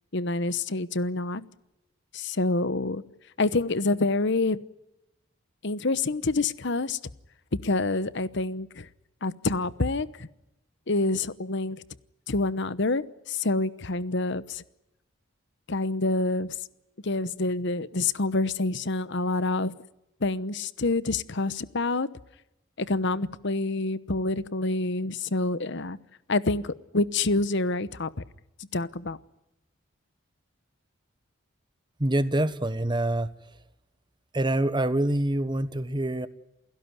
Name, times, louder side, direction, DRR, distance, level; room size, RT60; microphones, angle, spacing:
voice 1, 0.1-1.5 2.1-3.0 3.4-4.6 5.6-7.0 7.6-8.9 9.2-10.3 10.9-11.8 12.3-14.6 15.7-16.5 17.0-19.7 20.2-22.1 22.8-26.0 26.3-28.1 28.7-29.2, left 2 dB, 60° left, 16 dB, 1.0 m, -27 dB
voice 2, 32.0-33.3 34.3-36.3, right 1 dB, 20° right, 14 dB, 1.1 m, -25 dB
28.5 x 17.0 x 9.6 m, 0.92 s
head